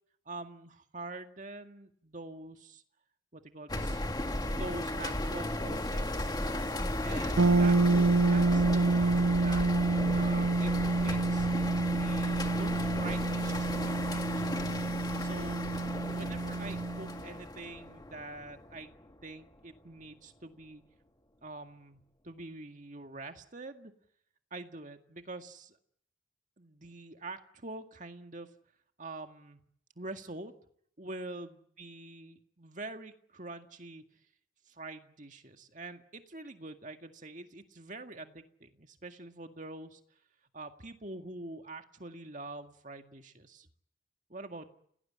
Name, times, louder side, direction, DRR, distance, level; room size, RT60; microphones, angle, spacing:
voice 1, 0.3-2.8 3.3-4.0 4.5-6.4 7.0-9.7 10.1-11.5 11.9-14.5 15.2-15.7 16.1-18.9 19.2-20.8 21.4-23.9 24.5-25.8 26.6-28.5 29.0-29.6 30.0-30.5 31.0-34.0 34.7-40.0 40.5-43.7 44.3-44.7, right 2 dB, 40° right, 6 dB, 1.9 m, -45 dB
sound 1, 3.7-19.1, left 1 dB, 20° left, 1.9 m, -35 dB
sound 2, 7.4-17.2, right 3 dB, 75° right, 1.0 m, -28 dB
29.0 x 18.5 x 8.7 m, 0.69 s
head